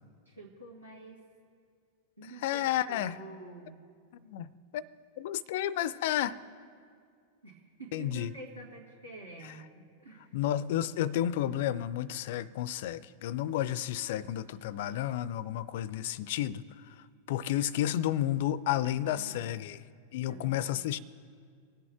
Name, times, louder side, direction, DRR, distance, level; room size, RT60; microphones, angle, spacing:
voice 1, 0.3-1.2 2.2-3.8 7.4-10.4 18.8-19.6 20.3-21.0, right 2 dB, 90° right, -5 dB, 2.5 m, -48 dB
voice 2, 2.4-3.2 4.2-4.8 5.2-6.4 7.9-8.3 10.3-16.6 17.3-19.8 20.1-21.0, left 12 dB, 50° left, 20 dB, 0.4 m, -31 dB
23.5 x 8.5 x 3.6 m, 2.2 s
figure-of-eight pair, 90°, 0 cm